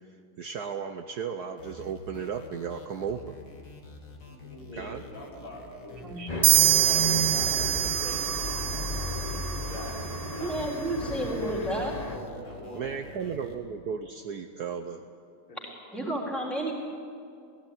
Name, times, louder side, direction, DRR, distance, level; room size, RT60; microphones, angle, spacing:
voice 1, 0.4-3.3 4.7-5.0 6.2-7.1 12.7-15.0, right 6 dB, 60° right, 5 dB, 1.1 m, -35 dB
sound 1, 1.6-13.6, left 1 dB, 60° left, 2.8 m, -48 dB
voice 2, 4.2-6.5 7.3-10.0 10.3-10.5 11.0-11.2 12.0-13.4 15.5-15.6, equal, 85° left, -4 dB, 6.0 m, -44 dB
sound 2, 6.3-12.2, left 1 dB, 30° left, 0.8 m, -33 dB
sound 3, 6.4-10.0, right 14 dB, 90° right, 1.6 m, -25 dB
voice 3, 10.4-11.9 15.9-16.7, right 1 dB, ahead, -2 dB, 3.9 m, -31 dB
17.5 x 16.0 x 9.8 m, 2.4 s
omnidirectional pair, 2.3 m